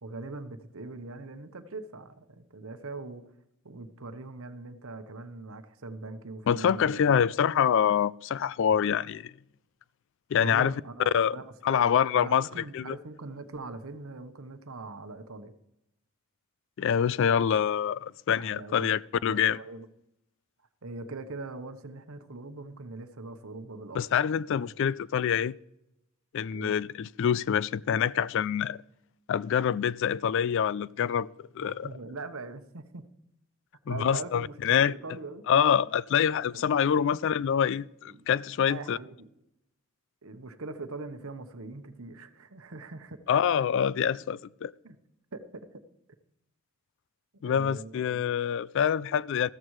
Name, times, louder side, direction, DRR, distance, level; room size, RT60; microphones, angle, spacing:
voice 1, 0.0-3.3 3.6-7.2 10.4-11.9 12.1-15.5 18.4-18.9 19.2-19.9 20.8-24.0 24.5-24.7 26.5-26.7 31.6-33.1 33.9-35.4 36.5-37.1 38.1-38.3 38.5-39.3 40.2-43.3 44.8-45.0 45.3-45.8 47.3-48.2, right 3 dB, 70° right, 1.0 m, -42 dB
voice 2, 6.5-9.3 10.3-10.7 11.1-11.4 11.6-13.0 16.8-19.6 23.9-25.5 26.3-28.8 29.3-31.3 31.6-31.9 33.9-34.9 35.5-39.0 43.3-44.7 47.4-49.5, left 8 dB, 60° left, 0.3 m, -26 dB
13.5 x 13.5 x 3.2 m
head